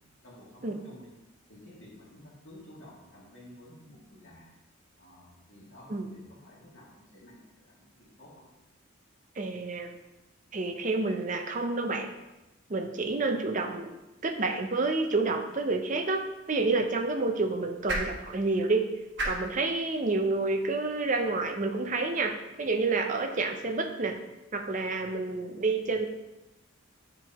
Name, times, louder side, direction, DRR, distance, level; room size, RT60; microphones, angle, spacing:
voice 1, 0.2-1.1 1.5-4.5 5.0-8.5, left 1 dB, 60° left, -5 dB, 2.1 m, -52 dB
voice 2, 9.4-9.9 10.5-12.1 12.7-13.9 14.2-16.2 16.5-18.9 19.2-24.2 24.5-26.1, right 3 dB, 35° right, 5 dB, 0.5 m, -29 dB
sound 1, 16.1-22.3, right 1 dB, 55° right, 1.3 m, -40 dB
9.1 x 4.5 x 2.9 m, 0.99 s
head